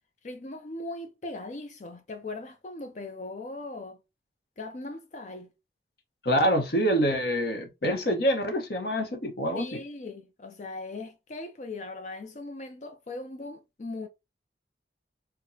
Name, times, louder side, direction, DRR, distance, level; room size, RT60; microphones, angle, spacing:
voice 1, 0.2-4.0 4.6-5.5 9.6-14.1, left 2 dB, 40° left, 0.5 m, -39 dB
voice 2, 6.2-9.8, equal, 60° left, 0.9 m, -26 dB
4.7 x 2.2 x 2.7 m
head